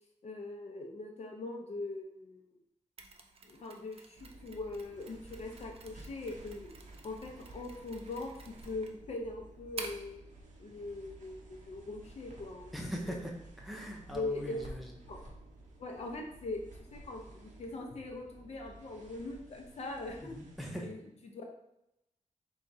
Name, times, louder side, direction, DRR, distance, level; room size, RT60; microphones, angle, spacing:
voice 1, 0.2-2.5 3.5-6.7 7.0-10.2 10.6-13.2 14.1-14.6 15.1-15.2 15.8-20.4 20.8-21.5, left 2 dB, 55° left, 0 dB, 0.7 m, -41 dB
Mechanisms, 3.0-10.1, right 4 dB, 50° right, 0.5 m, -50 dB
sound 1, 4.1-20.7, right 1 dB, 75° right, 0.9 m, -53 dB
voice 2, 12.7-14.9 20.2-20.9, equal, ahead, 0 dB, 0.7 m, -41 dB
4.6 x 3.5 x 2.7 m, 0.83 s
wide cardioid pair, 155°, 13 cm